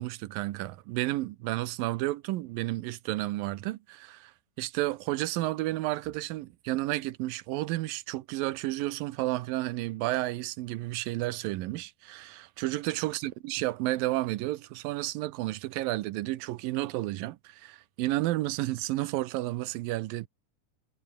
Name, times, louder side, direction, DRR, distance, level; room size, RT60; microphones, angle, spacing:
voice 1, 0.0-4.3 4.6-20.3, right 17 dB, 85° right, 2.6 m, -31 dB
omnidirectional pair, 4.0 m